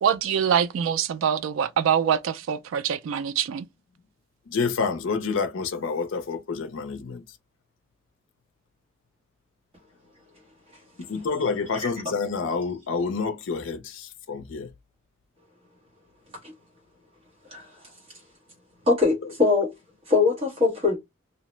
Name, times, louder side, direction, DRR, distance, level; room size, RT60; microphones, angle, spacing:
voice 1, 0.0-3.7, right 8 dB, 80° right, 0.3 m, -24 dB
voice 2, 4.5-7.2 11.0-14.7 19.2-19.3, left 4 dB, 75° left, 0.5 m, -28 dB
voice 3, 18.9-19.7 20.1-21.0, left 4 dB, 30° right, 1.0 m, -21 dB
2.7 x 2.0 x 3.0 m
head